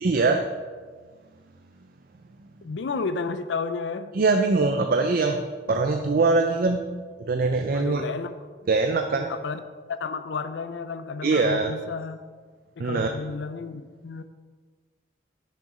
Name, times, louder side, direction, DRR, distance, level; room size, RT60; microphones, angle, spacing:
voice 1, 0.0-0.4 4.1-5.4 5.7-6.8 7.2-8.0 8.7-9.3 11.2-11.7 12.8-13.1, right 3 dB, 55° right, 5 dB, 0.5 m, -22 dB
voice 2, 2.6-4.1 7.7-8.3 9.3-9.6 9.9-12.2 12.8-14.2, left 4 dB, 80° left, 10 dB, 0.5 m, -32 dB
6.6 x 6.6 x 4.9 m, 1.5 s
head